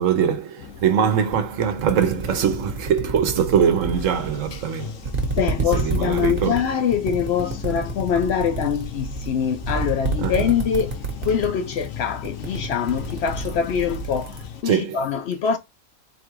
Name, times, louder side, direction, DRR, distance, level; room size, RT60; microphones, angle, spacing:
voice 1, 0.0-5.0 5.6-6.7 10.2-10.5 14.6-15.0, right 8 dB, 75° right, 1.2 m, -22 dB
Bathtub (filling or washing), 0.6-14.6, left 8 dB, 85° left, 1.1 m, -38 dB
sound 1, 1.3-1.4 1.8-4.7 5.0-11.5 11.7-12.0 12.2-14.4, right 4 dB, 45° right, 1.3 m, -28 dB
voice 2, 5.3-15.6, left 7 dB, 65° left, 0.7 m, -24 dB
4.3 x 2.4 x 4.5 m
omnidirectional pair, 1.4 m